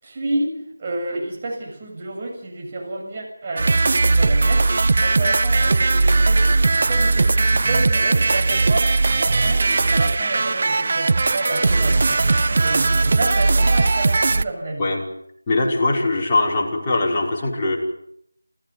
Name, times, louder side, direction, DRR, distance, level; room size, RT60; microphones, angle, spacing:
voice 1, 0.0-12.1 12.6-14.9, right 2 dB, 25° right, 1 dB, 7.1 m, -30 dB
sound 1, 3.6-14.4, right 3 dB, 45° right, 0.9 m, -18 dB
voice 2, 15.5-17.8, left 2 dB, 20° left, -4 dB, 5.6 m, -21 dB
28.5 x 15.5 x 9.7 m, 0.73 s
figure-of-eight pair, 170°, 0 cm